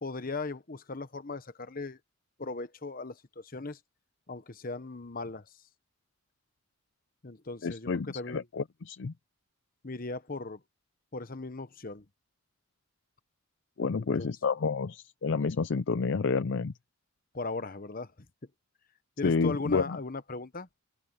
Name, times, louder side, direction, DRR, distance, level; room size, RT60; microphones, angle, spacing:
voice 1, 0.0-2.0 2.4-3.8 4.3-5.5 7.2-8.5 9.8-10.6 11.1-12.0 13.9-14.3 17.3-18.1 19.2-20.7, left 3 dB, 45° left, 1.1 m, -38 dB
voice 2, 7.6-9.1 13.8-16.7 19.2-20.0, left 4 dB, 60° left, 0.5 m, -29 dB
head